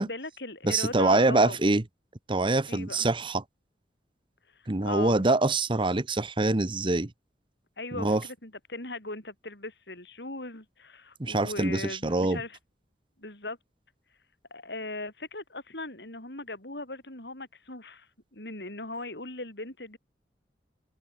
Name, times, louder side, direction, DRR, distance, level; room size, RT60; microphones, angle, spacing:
voice 1, 0.0-1.6 2.7-3.1 4.6-5.3 7.8-12.6 13.2-13.6 14.5-20.0, left 2 dB, 65° left, 7.3 m, -38 dB
voice 2, 0.6-1.8 2.3-3.4 4.7-7.1 8.0-8.2 11.2-12.4, right 2 dB, 30° right, 1.0 m, -25 dB
head